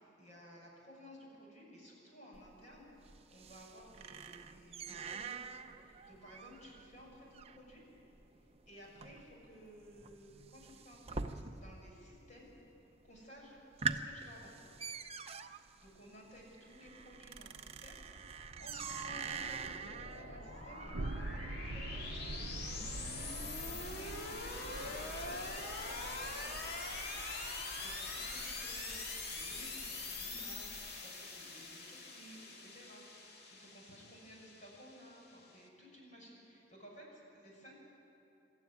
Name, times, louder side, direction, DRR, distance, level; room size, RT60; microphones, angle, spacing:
voice 1, 0.2-7.8 8.7-12.5 13.0-13.6 13.8-14.6 15.8-18.0 18.3-22.9 23.6-24.2 24.7-25.6 25.9-26.7 27.8-33.0 33.5-37.7, equal, 40° left, -2 dB, 6.2 m, -56 dB
sound 1, 2.3-11.9 12.2-12.8 13.2-13.3 13.6-21.9, right 5 dB, 35° right, 0.7 m, -45 dB
sound 2, 16.9-35.6, left 3 dB, 60° left, 2.1 m, -44 dB
sound 3, 20.5-31.0, right 2 dB, 80° right, 0.7 m, -47 dB
26.5 x 13.0 x 9.6 m, 3.0 s
head